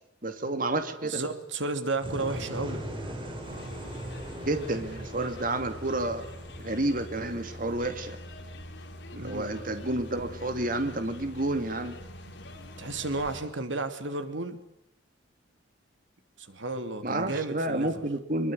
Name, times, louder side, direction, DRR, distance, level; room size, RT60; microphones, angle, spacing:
voice 1, 0.2-1.2 4.4-6.2 6.6-8.2 9.1-12.0 17.0-18.5, right 2 dB, 45° right, 8 dB, 2.5 m, -30 dB
voice 2, 1.0-2.8 9.2-9.5 12.8-14.6 16.4-18.0, right 3 dB, 85° right, 9 dB, 3.0 m, -33 dB
sound 1, 2.0-7.9, right 1 dB, 30° right, 6.5 m, -40 dB
sound 2, 3.4-13.4, left 1 dB, 70° left, 4.5 m, -44 dB
24.5 x 22.5 x 9.3 m, 0.79 s
head